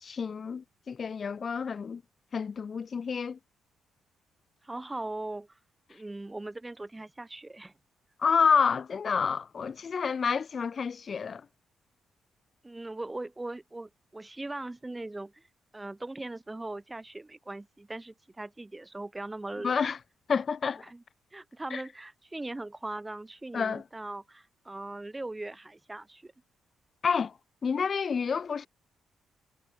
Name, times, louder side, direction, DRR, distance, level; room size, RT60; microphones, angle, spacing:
voice 1, 0.0-2.0 2.3-3.4 8.2-11.4 19.6-20.0 20.3-20.8 21.7-21.8 23.5-23.8 27.0-27.3 27.6-28.7, left 6 dB, 50° left, 0.5 m, -29 dB
voice 2, 4.6-5.5 5.9-7.7 12.6-15.4 15.7-19.7 20.8-21.0 21.3-26.3, right 2 dB, 20° right, 3.1 m, -40 dB
supercardioid pair, 55°, 0 cm